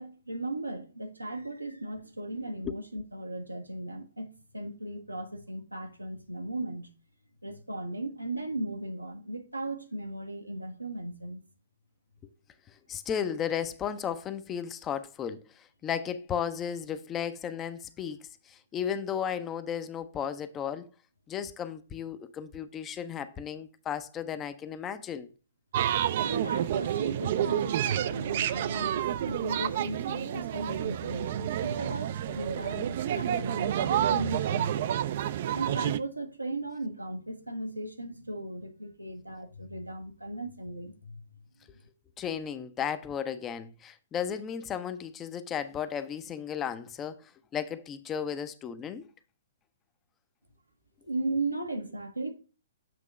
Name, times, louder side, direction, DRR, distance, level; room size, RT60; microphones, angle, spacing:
voice 1, 0.0-6.9 7.4-11.4 26.2-34.9 35.5-41.2 51.0-52.3, right 2 dB, 90° right, 0.9 m, -37 dB
voice 2, 12.7-20.9 21.3-25.3 42.2-49.1, left 8 dB, 20° left, 0.4 m, -34 dB
sound 1, 25.7-36.0, right 10 dB, 45° right, 0.3 m, -29 dB
7.6 x 2.9 x 5.0 m
figure-of-eight pair, 120°, 0 cm